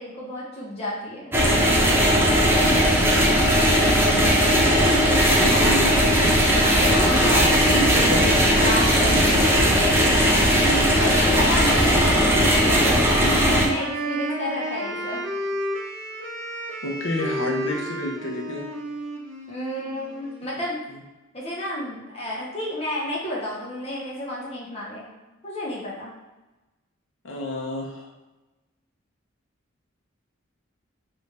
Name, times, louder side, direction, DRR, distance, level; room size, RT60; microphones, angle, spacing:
voice 1, 0.0-1.3 6.6-7.8 8.6-9.5 11.0-15.2 19.5-20.8 21.3-25.1 25.4-26.1, left 1 dB, 30° left, -5 dB, 0.9 m, -31 dB
sound 1, 1.3-13.7, equal, 10° right, 0.4 m, -18 dB
sound 2, 2.5-12.2, equal, 25° right, 1.0 m, -35 dB
voice 2, 4.2-6.3 6.8-8.7 9.1-9.8 16.8-18.7 20.9-21.0 27.2-28.1, left 1 dB, 70° left, 0 dB, 0.7 m, -30 dB
Wind instrument woodwind instrument, 12.8-20.7, equal, 65° right, 0.6 m, -32 dB
3.2 x 2.5 x 3.3 m, 1.1 s
head